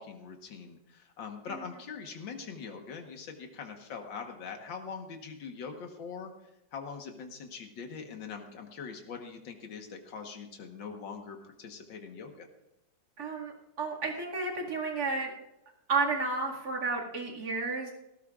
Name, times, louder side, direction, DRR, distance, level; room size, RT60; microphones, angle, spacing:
voice 1, 0.0-12.5, left 5 dB, 90° left, 3 dB, 2.1 m, -43 dB
voice 2, 13.2-15.3 15.9-17.9, right 4 dB, 55° right, -2 dB, 2.7 m, -32 dB
18.5 x 18.0 x 2.5 m, 0.90 s
omnidirectional pair, 2.0 m